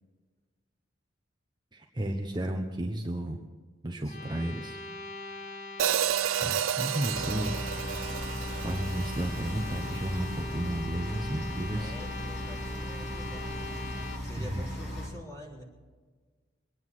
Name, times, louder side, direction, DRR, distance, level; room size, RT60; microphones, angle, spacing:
voice 1, 1.7-3.4 3.8-4.8 6.4-7.5 8.5-11.9 14.4-14.6, right 1 dB, 25° right, 2 dB, 1.1 m, -33 dB
sound 1, 4.0-14.2, left 3 dB, 35° left, 1.5 m, -42 dB
voice 2, 4.0-4.4 11.7-15.6, equal, 15° left, -2 dB, 3.9 m, -47 dB
Hi-hat, 5.8-10.0, right 10 dB, 90° right, 0.4 m, -31 dB
sound 2, 7.1-15.1, equal, 60° left, 3.7 m, -37 dB
23.0 x 9.6 x 6.3 m, 1.4 s
head